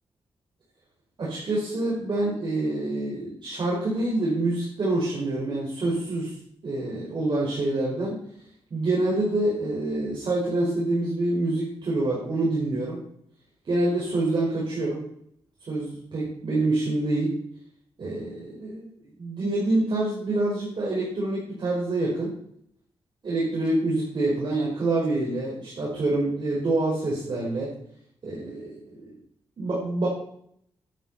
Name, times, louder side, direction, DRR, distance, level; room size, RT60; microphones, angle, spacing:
voice 1, 1.2-6.3 6.6-8.2 8.7-13.0 13.7-15.0 15.7-17.3 18.0-18.9 19.2-22.3 23.2-27.7 28.2-28.7 29.0-29.1 29.6-30.1, right 2 dB, 50° right, -6 dB, 5.2 m, -26 dB
11.0 x 9.3 x 5.6 m, 0.66 s
cardioid pair, 105°, 10 cm